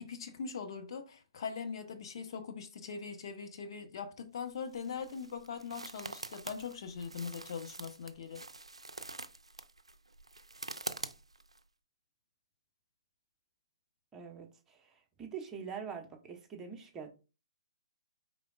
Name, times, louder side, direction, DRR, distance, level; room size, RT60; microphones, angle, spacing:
voice 1, 0.0-8.4, left 6 dB, 55° left, 0.9 m, -41 dB
sound 1, 4.4-11.6, right 3 dB, 90° right, 0.4 m, -46 dB
voice 2, 14.1-17.1, right 6 dB, 15° right, 0.9 m, -44 dB
4.9 x 3.5 x 2.4 m
figure-of-eight pair, 130°, 3 cm